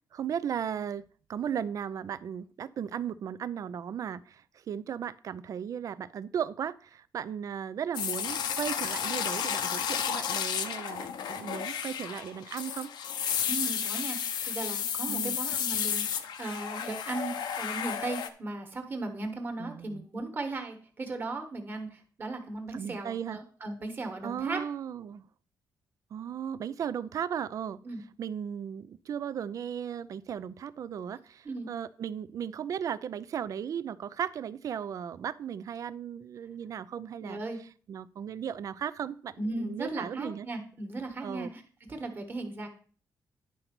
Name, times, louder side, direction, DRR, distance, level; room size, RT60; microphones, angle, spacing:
voice 1, 0.1-1.0 1.3-12.9 15.1-15.4 19.6-20.0 22.7-23.4 24.2-25.2 26.1-27.8 28.2-37.4 37.9-40.5 41.2-41.5, right 8 dB, 50° right, 17 dB, 0.4 m, -36 dB
sound 1, 7.9-18.3, left 8 dB, 85° left, 0.8 m, -32 dB
voice 2, 13.5-24.6 27.8-28.0 31.4-31.7 37.2-37.6 39.4-41.6 41.9-42.7, right 2 dB, 30° right, 5 dB, 1.4 m, -37 dB
10.5 x 3.9 x 5.9 m, 0.43 s
wide cardioid pair, 165°, 7 cm